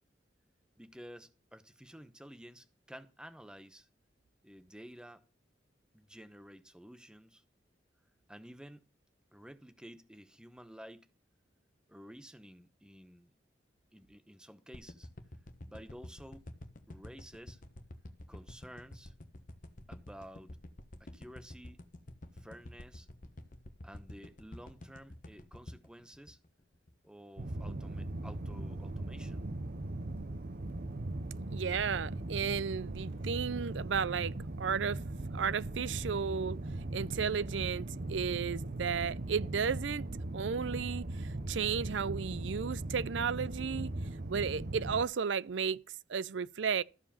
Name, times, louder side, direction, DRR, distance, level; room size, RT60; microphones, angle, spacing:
voice 1, 0.8-3.9 4.4-5.2 5.9-7.4 8.3-8.9 9.3-11.1 11.9-13.3 13.9-15.1 15.6-16.5 16.9-17.6 18.3-19.1 19.9-20.6 21.0-21.8 22.3-23.1 23.8-26.4 27.0-29.5, equal, 5° right, 0.9 m, -52 dB
sound 1, 14.7-27.1 27.5-27.6, left 1 dB, 45° left, 1.2 m, -49 dB
sound 2, 27.4-45.0, right 2 dB, 55° right, 0.8 m, -39 dB
voice 2, 31.5-35.0 35.3-36.6 36.9-40.1 40.3-43.9 44.3-45.8 46.1-46.8, right 6 dB, 90° right, 0.5 m, -34 dB
14.0 x 4.9 x 7.1 m
head